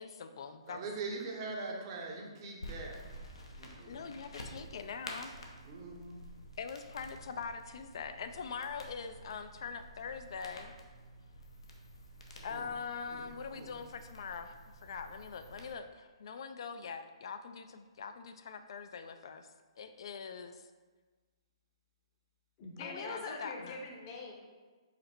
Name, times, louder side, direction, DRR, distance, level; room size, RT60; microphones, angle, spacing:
voice 1, 0.0-0.8 3.9-5.3 6.6-10.7 12.4-14.5 14.8-19.5 19.8-20.7 22.8-23.8, left 6 dB, 60° left, 9 dB, 0.3 m, -43 dB
voice 2, 0.7-2.9 3.6-4.0 5.7-6.2 12.5-12.6 13.1-13.2 13.5-13.7, right 3 dB, 40° right, 0 dB, 0.8 m, -42 dB
sound 1, 2.6-15.7, equal, 80° left, 0.8 m, -50 dB
voice 3, 22.6-24.3, left 3 dB, 35° left, 0 dB, 0.8 m, -43 dB
4.9 x 2.1 x 4.4 m, 1.4 s
hypercardioid pair, 135°, 3 cm